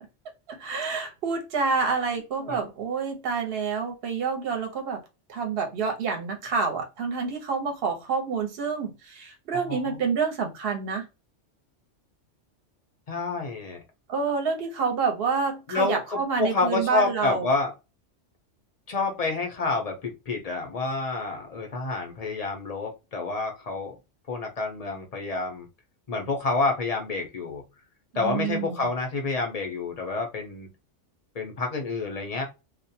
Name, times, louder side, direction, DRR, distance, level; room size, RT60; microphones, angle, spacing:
voice 1, 0.5-5.0 5.3-11.1 14.1-17.5 28.2-28.9, right 5 dB, 55° right, 4 dB, 0.9 m, -28 dB
voice 2, 9.7-10.0 13.1-13.8 15.7-17.7 18.9-23.9 24.3-25.7 26.1-27.6 28.1-30.7 31.3-32.5, left 3 dB, 45° left, 3 dB, 0.5 m, -28 dB
2.4 x 2.1 x 2.7 m, 0.26 s
omnidirectional pair, 1.3 m